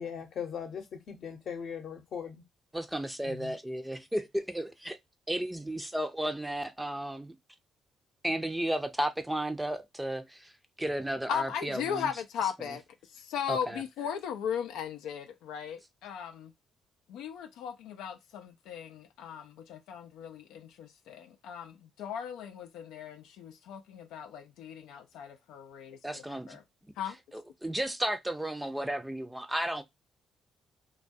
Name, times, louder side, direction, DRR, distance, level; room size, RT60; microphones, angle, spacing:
voice 1, 0.0-2.4 3.2-3.5, left 7 dB, 65° left, 0.8 m, -39 dB
voice 2, 2.7-5.0 5.3-7.4 8.2-10.5 10.8-12.1 12.6-12.7 13.5-13.8 26.0-26.6 27.3-29.8, right 1 dB, 10° right, 0.5 m, -33 dB
voice 3, 11.3-12.8 13.1-16.5 17.1-26.6 27.0-27.2, left 8 dB, 85° left, 0.4 m, -37 dB
2.2 x 2.2 x 2.5 m
cardioid pair, 75°, 0 cm